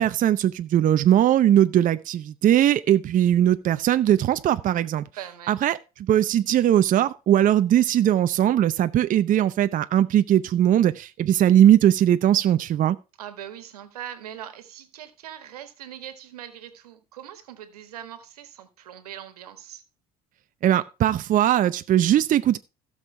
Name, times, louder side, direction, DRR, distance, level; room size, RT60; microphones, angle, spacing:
voice 1, 0.0-5.0 5.5-13.0 20.6-22.6, right 11 dB, 45° right, 0.6 m, -20 dB
voice 2, 5.1-5.5 13.2-19.8, right 10 dB, 90° right, 1.6 m, -41 dB
16.5 x 6.4 x 3.3 m
hypercardioid pair, 75°, 19 cm